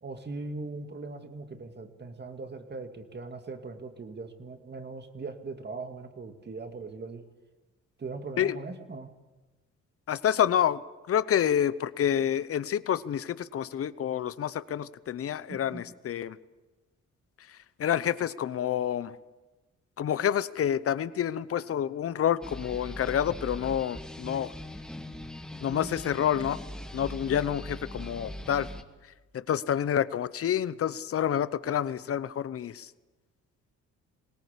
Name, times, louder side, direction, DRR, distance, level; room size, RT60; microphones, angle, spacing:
voice 1, 0.0-7.2 8.0-9.1 15.5-15.8, right 3 dB, 35° right, 7 dB, 2.3 m, -40 dB
voice 2, 10.1-10.8 11.1-16.4 17.5-19.2 20.0-24.5 25.6-26.6 26.9-28.7 29.3-32.9, left 9 dB, 50° left, 16 dB, 0.9 m, -28 dB
sound 1, 22.4-28.8, equal, ahead, 1.8 m, -41 dB
21.0 x 18.0 x 8.4 m, 1.2 s
cardioid pair, 90°, 30 cm